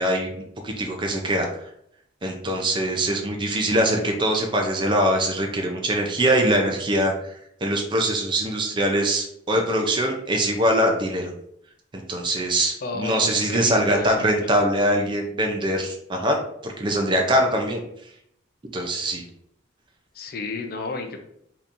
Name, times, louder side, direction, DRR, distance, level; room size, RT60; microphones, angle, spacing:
voice 1, 0.0-1.5 2.2-7.1 7.6-11.3 11.9-16.4 16.6-17.8 18.7-19.2, right 1 dB, 25° right, 2 dB, 0.4 m, -23 dB
voice 2, 12.8-14.3 20.1-21.2, left 3 dB, 50° left, 5 dB, 0.4 m, -32 dB
3.6 x 2.8 x 2.5 m, 0.72 s
head